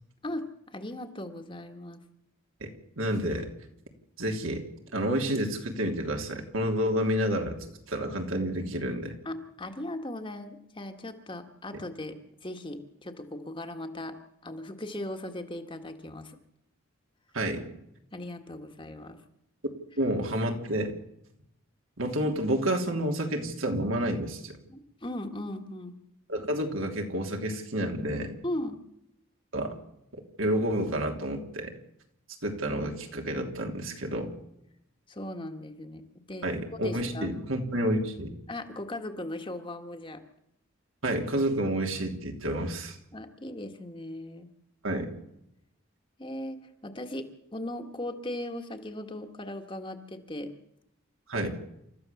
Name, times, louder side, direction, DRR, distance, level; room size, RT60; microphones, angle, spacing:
voice 1, 0.2-2.0 9.2-14.1 14.4-16.4 18.1-19.2 24.7-26.0 28.4-28.8 35.1-37.3 38.5-40.2 43.1-44.5 46.2-50.5, left 1 dB, 25° left, 5 dB, 1.6 m, -38 dB
voice 2, 2.6-3.5 4.2-4.6 4.9-9.2 17.3-17.6 20.0-20.9 22.0-24.6 26.3-28.4 29.5-29.8 30.4-31.7 32.4-34.3 36.4-38.3 41.0-43.0 44.8-45.1 51.3-51.5, right 1 dB, 75° right, 3 dB, 3.1 m, -29 dB
29.0 x 14.0 x 7.1 m, 0.80 s
head